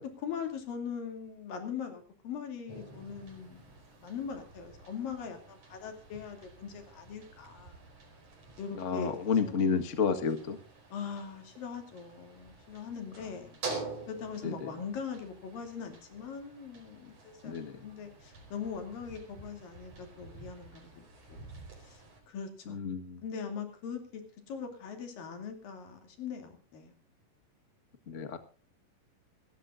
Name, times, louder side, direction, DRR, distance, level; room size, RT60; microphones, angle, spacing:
voice 1, 0.2-3.7 4.0-7.8 8.6-9.7 10.9-21.5 21.8-22.8 23.2-24.2 24.5-26.9, left 6 dB, 85° left, 6 dB, 4.5 m, -41 dB
sound 1, 2.7-22.2, right 3 dB, 45° right, 5.5 m, -48 dB
voice 2, 8.7-10.6 14.4-14.7 17.4-17.8 22.7-23.2 28.1-28.4, left 5 dB, 45° left, 9 dB, 0.9 m, -31 dB
27.5 x 13.0 x 2.6 m, 0.34 s
omnidirectional pair, 3.9 m